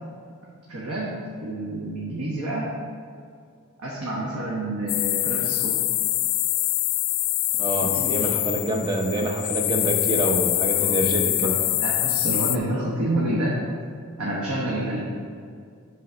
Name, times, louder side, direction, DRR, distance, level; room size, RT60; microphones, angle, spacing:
voice 1, 0.7-2.7 3.8-5.7 7.7-8.2 10.7-11.0 11.4-11.5 11.8-13.6 14.2-15.0, right 1 dB, 90° right, -5 dB, 1.2 m, -28 dB
sound 1, 4.9-12.6, left 16 dB, 65° left, 0.3 m, -24 dB
voice 2, 7.6-11.5, right 1 dB, 20° right, 2 dB, 0.7 m, -26 dB
8.2 x 4.1 x 5.0 m, 2.2 s
head